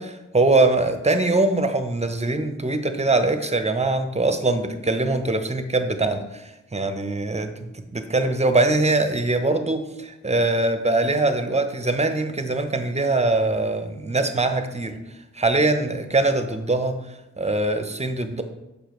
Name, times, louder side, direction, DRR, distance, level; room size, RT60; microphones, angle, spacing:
voice 1, 0.0-15.0 15.3-18.4, right 2 dB, 20° right, 8 dB, 0.7 m, -22 dB
6.7 x 5.1 x 3.1 m, 0.97 s
cardioid pair, 40°, 31 cm